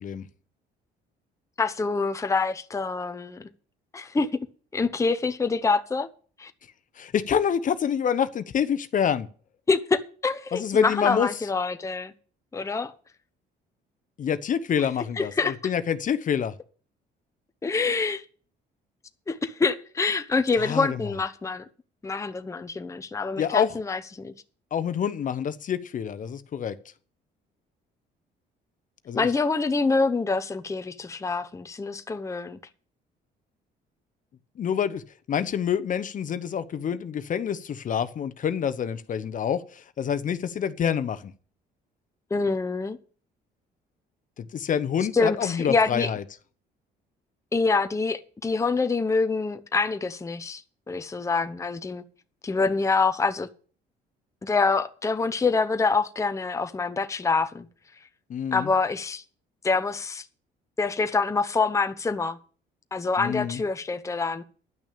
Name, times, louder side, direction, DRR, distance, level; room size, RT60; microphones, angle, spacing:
voice 1, 1.6-3.4 3.9-4.3 4.7-6.1 6.4-6.5 9.7-12.1 12.5-12.9 15.2-15.6 17.6-18.2 19.3-21.6 22.0-24.3 29.1-32.6 42.3-43.0 45.1-46.1 47.5-52.0 52.4-53.5 54.4-57.7 58.5-59.2 59.6-60.2 60.8-62.4 62.9-64.4, left 4 dB, 15° left, 0.8 m, -26 dB
voice 2, 7.0-9.3 10.5-11.3 14.2-16.5 20.6-21.1 23.4-23.8 24.7-26.7 29.1-29.3 34.6-35.0 35.3-41.3 44.4-46.2 58.3-58.7 63.2-63.6, left 8 dB, 45° left, 0.9 m, -27 dB
10.5 x 6.1 x 8.5 m
cardioid pair, 100°, 18 cm